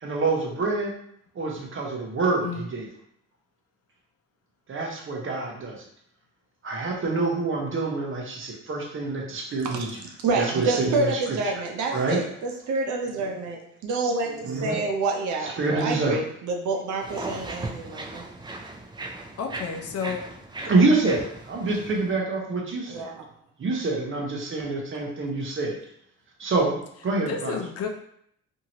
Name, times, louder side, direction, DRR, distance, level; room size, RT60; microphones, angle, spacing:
voice 1, 0.0-0.9 1.3-2.9 4.7-5.8 6.6-9.9 10.3-11.4 11.9-12.2 14.4-14.8 15.6-16.2 20.7-23.1 23.6-25.8 26.4-27.6, right 3 dB, 45° right, -1 dB, 0.8 m, -26 dB
voice 2, 10.2-18.2 22.9-23.3, right 3 dB, 75° right, 1 dB, 0.7 m, -28 dB
sound 1, 17.0-22.1, right 2 dB, 15° right, 0.4 m, -38 dB
voice 3, 19.4-20.2 27.2-27.9, left 6 dB, 55° left, 3 dB, 0.5 m, -31 dB
2.7 x 2.7 x 2.9 m, 0.71 s
cardioid pair, 90°, 30 cm